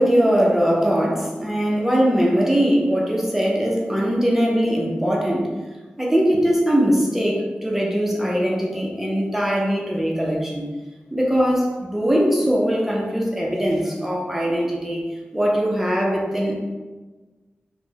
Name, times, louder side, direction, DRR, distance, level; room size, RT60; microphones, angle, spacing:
voice 1, 0.0-5.5 6.0-10.7 11.1-15.0 15.3-16.6, equal, 5° right, -2 dB, 0.5 m, -21 dB
4.2 x 2.0 x 2.8 m, 1.3 s
wide cardioid pair, 100°, 4 cm